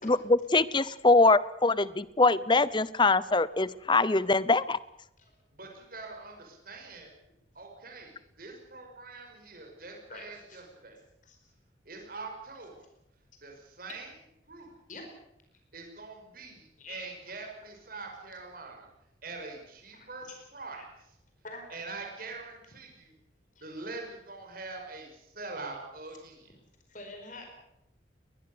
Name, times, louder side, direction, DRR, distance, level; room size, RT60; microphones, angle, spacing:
voice 1, 0.0-4.8, left 3 dB, 25° left, 18 dB, 0.7 m, -23 dB
voice 2, 5.5-7.1 7.6-11.0 11.9-12.9 13.4-14.1 14.5-14.7 15.7-18.9 19.2-20.8 21.7-23.1 23.6-26.5, right 3 dB, 50° right, 2 dB, 5.5 m, -44 dB
voice 3, 10.1-10.6 11.2-11.4 14.9-15.1 16.8-17.1 19.9-20.4 20.8-20.9 21.4-21.7 23.6-23.7 26.9-27.5, left 2 dB, 40° left, 4 dB, 4.7 m, -45 dB
21.0 x 21.0 x 6.9 m, 0.81 s
head